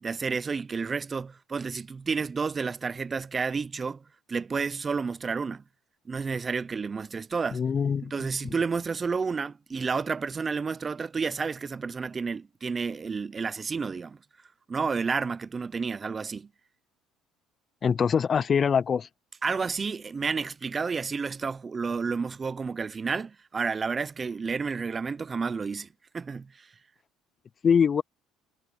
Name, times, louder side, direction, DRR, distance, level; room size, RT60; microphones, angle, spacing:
voice 1, 0.0-5.6 6.1-7.6 8.0-14.2 14.7-16.5 19.4-25.9 26.1-26.7, right 5 dB, 25° right, 0.6 m, -31 dB
voice 2, 7.5-8.1 17.8-19.1 27.6-28.0, left 6 dB, 35° left, 0.5 m, -23 dB
cardioid pair, 105°, 0 cm